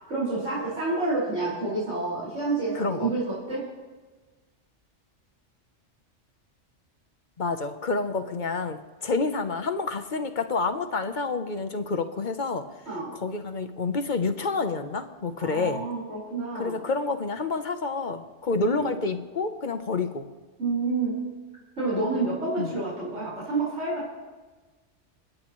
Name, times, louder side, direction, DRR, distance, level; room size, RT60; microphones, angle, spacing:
voice 1, 0.1-3.7 12.9-13.1 15.4-16.8 18.7-19.0 20.6-21.3 21.8-24.1, right 3 dB, 90° right, -9 dB, 5.2 m, -29 dB
voice 2, 2.7-3.1 7.4-12.7 13.2-15.8 16.5-20.3 22.6-22.7, left 3 dB, 45° left, 8 dB, 0.9 m, -28 dB
29.0 x 10.0 x 3.1 m, 1.3 s
omnidirectional pair, 1.2 m